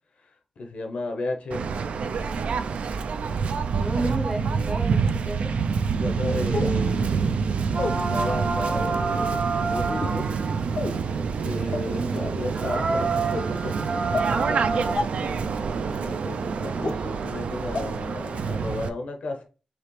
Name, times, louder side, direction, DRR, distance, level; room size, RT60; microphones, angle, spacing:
voice 1, 0.6-1.8 6.0-10.3 11.4-13.8 14.0-14.6 16.0-19.4, left 2 dB, 75° left, 0.8 m, -34 dB
Waves surf, 1.5-18.9, right 5 dB, 80° right, 0.4 m, -27 dB
voice 2, 3.7-5.5 11.9-12.3, right 2 dB, 15° right, 0.6 m, -32 dB
sound 1, 4.0-4.1 5.0-5.1 6.5-6.8 7.7-7.9 8.7-8.9 9.9-10.2 10.8-11.0 11.7-11.8 12.4-12.6 13.3-13.4 14.1-14.3 15.0-15.1 15.9-16.0 16.8-16.9 17.7-17.8 18.3-18.4, left 3 dB, 45° left, 0.4 m, -30 dB
sound 2, 7.7-10.8 11.7-11.8 12.2-12.3 12.5-15.0, right 4 dB, 55° right, 0.7 m, -28 dB
4.8 x 2.9 x 3.1 m
wide cardioid pair, 135°, 2 cm